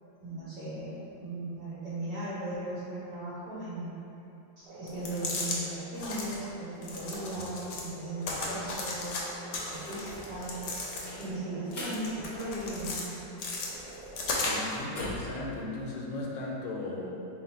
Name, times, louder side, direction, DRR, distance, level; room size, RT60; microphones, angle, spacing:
voice 1, 0.2-4.0 4.6-9.3 9.7-13.2 13.5-13.8, right 1 dB, 55° right, -12 dB, 2.0 m, -38 dB
sound 1, 4.6-15.1, right 2 dB, 70° right, 1.4 m, -49 dB
sound 2, 4.9-5.6 5.9-6.4 6.8-7.9 8.2-9.2 9.5-11.3 11.7-13.0 13.4-14.8, left 3 dB, 70° left, 1.1 m, -35 dB
sound 3, 9.5-13.2 13.5-15.4, left 1 dB, 50° left, 0.5 m, -44 dB
voice 2, 14.4-17.3, left 2 dB, 85° left, -3 dB, 1.4 m, -37 dB
4.0 x 2.2 x 4.1 m, 2.8 s
omnidirectional pair, 2.0 m